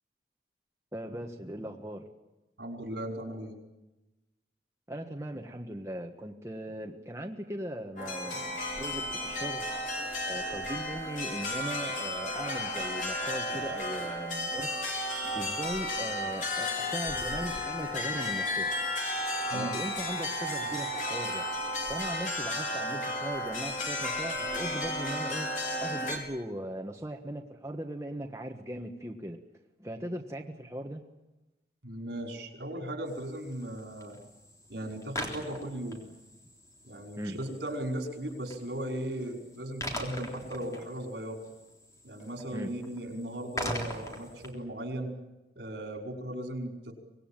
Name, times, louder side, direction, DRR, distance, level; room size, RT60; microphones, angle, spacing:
voice 1, 0.9-2.1 4.9-9.6 10.2-14.9 15.3-18.7 19.5-21.4 21.9-25.5 25.8-29.4 29.8-31.0 37.2-37.4 42.5-42.7, right 1 dB, 15° right, 2 dB, 1.4 m, -39 dB
voice 2, 2.6-3.6 19.5-19.8 31.8-34.2 34.7-36.1 36.8-41.4 42.0-45.2 45.6-46.9, right 1 dB, 75° right, 3 dB, 5.4 m, -37 dB
sound 1, 8.0-26.2, left 1 dB, 45° left, 4.6 m, -33 dB
sound 2, 33.1-44.5, equal, 20° left, 3.7 m, -42 dB
25.5 x 19.5 x 9.0 m, 1.0 s
head